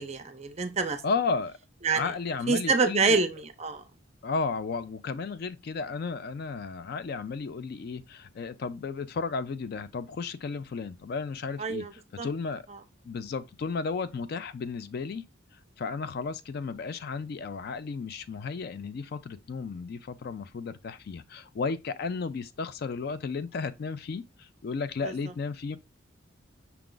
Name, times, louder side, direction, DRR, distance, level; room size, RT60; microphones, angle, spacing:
voice 1, 0.0-1.0 1.8-2.1 2.5-3.8 11.6-11.9 12.2-12.3 25.0-25.1, right 4 dB, 30° right, 0.5 m, -26 dB
voice 2, 1.0-1.6 1.9-3.2 4.2-12.6 13.0-15.2 15.8-25.8, left 4 dB, 50° left, 0.3 m, -33 dB
5.7 x 2.4 x 3.7 m
head